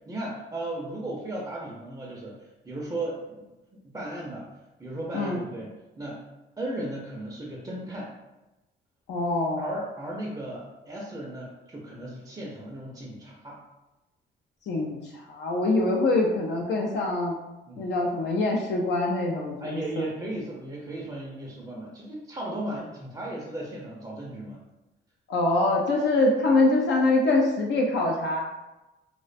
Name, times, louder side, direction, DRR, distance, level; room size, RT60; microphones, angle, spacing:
voice 1, 0.1-3.5 3.8-4.5 4.8-6.2 6.6-8.1 9.6-13.6 17.7-17.9 19.6-24.6, right 1 dB, 20° right, -4 dB, 0.5 m, -36 dB
voice 2, 9.1-9.6 14.7-15.0 15.3-17.3 17.8-20.1 25.3-28.4, left 2 dB, 65° left, -1 dB, 0.4 m, -24 dB
2.4 x 2.1 x 2.4 m, 1.0 s
cardioid pair, 90°, 20 cm